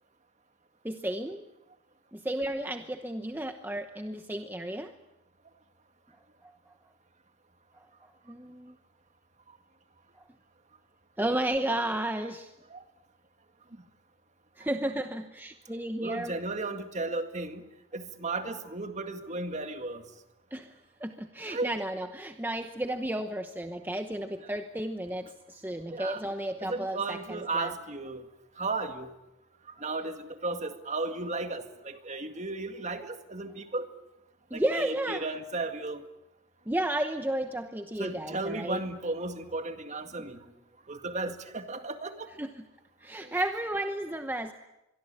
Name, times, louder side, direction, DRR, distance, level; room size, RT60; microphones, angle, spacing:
voice 1, 0.8-1.5 2.1-4.9 8.3-8.8 11.2-12.5 14.6-16.3 20.5-20.8 21.0-27.7 34.5-35.3 36.7-38.8 40.2-40.3 42.4-42.6 43.0-44.5, right 1 dB, 10° right, 7 dB, 0.9 m, -33 dB
voice 2, 16.0-17.6 17.9-20.0 21.5-21.7 25.9-26.2 26.6-28.2 28.6-29.1 29.8-33.9 34.5-36.0 38.0-40.4 40.9-42.3, right 3 dB, 35° right, 7 dB, 2.0 m, -34 dB
25.5 x 22.5 x 8.8 m, 0.91 s
head